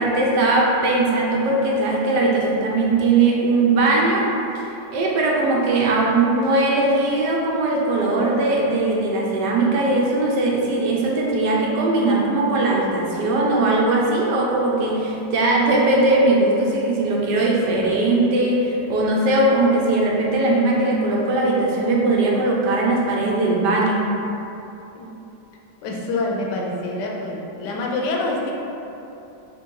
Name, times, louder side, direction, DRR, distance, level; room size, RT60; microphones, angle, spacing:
voice 1, 0.0-4.3 4.9-24.0, right 2 dB, 75° right, -3 dB, 1.2 m, -19 dB
voice 2, 25.8-28.5, left 2 dB, 75° left, -1 dB, 1.1 m, -26 dB
3.6 x 2.6 x 4.4 m, 2.9 s
omnidirectional pair, 2.0 m